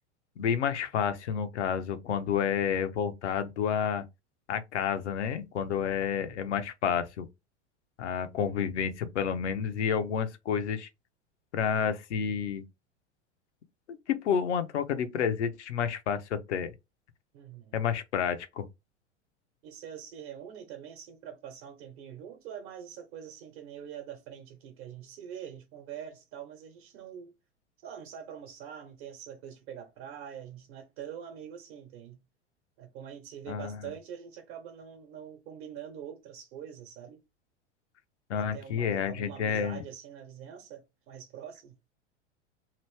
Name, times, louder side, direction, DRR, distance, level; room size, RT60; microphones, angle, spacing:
voice 1, 0.4-4.0 4.5-7.3 8.0-10.9 11.5-12.6 13.9-16.7 17.7-18.7 33.5-33.8 38.3-39.8, left 7 dB, 75° left, 0.7 m, -30 dB
voice 2, 17.3-17.8 19.6-27.3 27.8-32.2 32.8-37.2 38.5-41.9, right 9 dB, 55° right, 1.1 m, -44 dB
3.0 x 2.6 x 3.2 m
hypercardioid pair, 90°, 35 cm